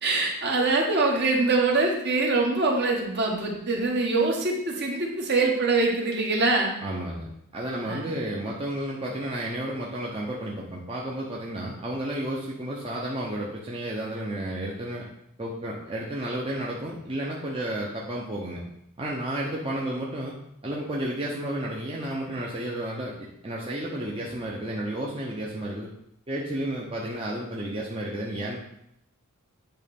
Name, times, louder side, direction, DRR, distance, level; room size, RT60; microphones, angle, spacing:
voice 1, 0.0-6.7 7.9-8.1, right 3 dB, 50° right, -1 dB, 1.5 m, -24 dB
voice 2, 6.8-15.1 15.4-18.6 19.0-20.3 20.6-25.9 26.3-28.6, right 1 dB, 25° right, -3 dB, 0.9 m, -32 dB
9.0 x 3.2 x 5.4 m, 0.76 s
head